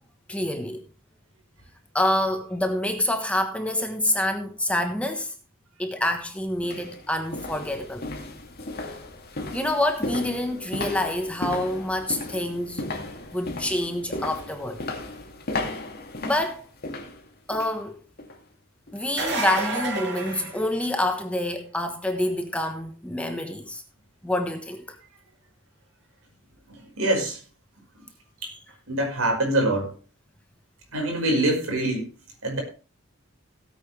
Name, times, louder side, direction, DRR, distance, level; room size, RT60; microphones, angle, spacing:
voice 1, 0.3-0.8 1.9-5.3 5.8-8.1 9.5-12.8 13.3-14.8 16.2-16.6 17.5-18.0 18.9-23.8 24.2-25.0, left 1 dB, 5° left, 1.2 m, -27 dB
sound 1, 5.9-6.0 6.6-17.8 18.2-18.4 18.9-19.0, left 2 dB, 45° left, 2.6 m, -35 dB
sound 2, 19.0-21.2 26.8-26.9 28.7-28.8, right 2 dB, 60° right, 5.6 m, -30 dB
voice 2, 27.0-27.4 28.4-28.5 28.9-29.9 30.9-32.1 32.4-32.6, right 1 dB, 75° right, 5.1 m, -24 dB
17.0 x 8.5 x 3.3 m
head